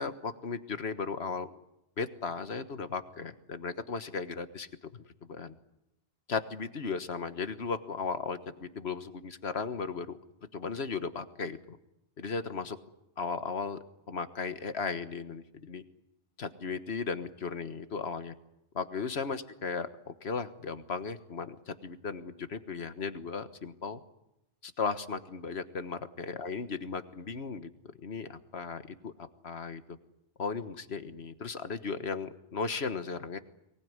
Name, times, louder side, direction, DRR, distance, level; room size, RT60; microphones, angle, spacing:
voice 1, 0.0-1.5 2.0-5.0 5.3-5.5 6.3-10.2 10.5-11.8 12.2-12.8 13.2-13.8 14.1-15.8 16.4-18.3 18.7-24.0 24.6-27.7 28.0-30.0 30.4-33.4, left 5 dB, 80° left, 11 dB, 1.6 m, -36 dB
23.5 x 19.5 x 9.6 m, 0.87 s
omnidirectional pair, 1.1 m